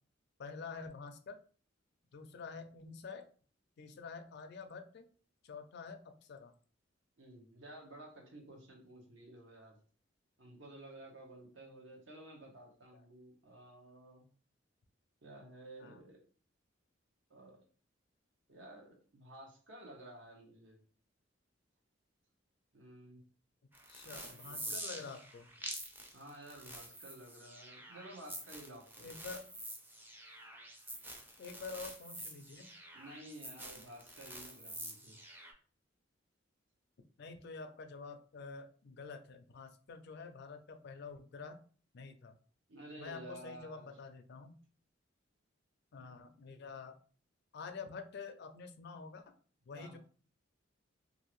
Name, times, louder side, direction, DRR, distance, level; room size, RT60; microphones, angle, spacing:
voice 1, 0.4-1.4 2.1-3.3 3.8-5.1 5.4-6.5 12.9-13.0 15.8-16.0 23.9-25.5 29.0-29.5 31.4-32.7 37.2-41.6 41.9-42.4 43.0-44.6 45.9-47.0 47.5-49.3 49.7-50.0, left 4 dB, 60° left, 8 dB, 0.4 m, -48 dB
voice 2, 7.2-9.8 10.4-14.2 15.2-16.2 17.3-17.6 18.5-20.8 22.7-23.2 24.1-25.2 26.1-29.2 32.9-35.2 42.7-44.0 49.7-50.0, right 1 dB, 70° right, 0 dB, 0.9 m, -53 dB
sound 1, 23.7-35.5, right 1 dB, 10° right, 0.5 m, -47 dB
2.7 x 2.5 x 3.0 m, 0.42 s
head